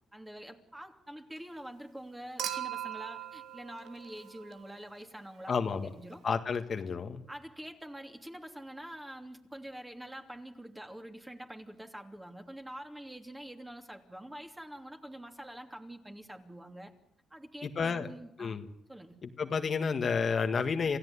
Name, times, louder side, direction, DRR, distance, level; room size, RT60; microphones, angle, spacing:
voice 1, 0.1-6.2 7.3-16.9 17.3-18.6 18.9-19.2, right 1 dB, 10° right, 5 dB, 3.0 m, -46 dB
Human group actions / Chink clink / Liquid, 2.4-4.8 6.3-6.4, right 10 dB, 75° right, 1.9 m, -39 dB
voice 2, 5.5-5.9 6.2-7.2 17.6-18.1 18.4-18.7 19.2-21.0, left 5 dB, 45° left, 6 dB, 1.7 m, -31 dB
28.0 x 16.0 x 9.8 m, 0.79 s
cardioid pair, 90°, 0 cm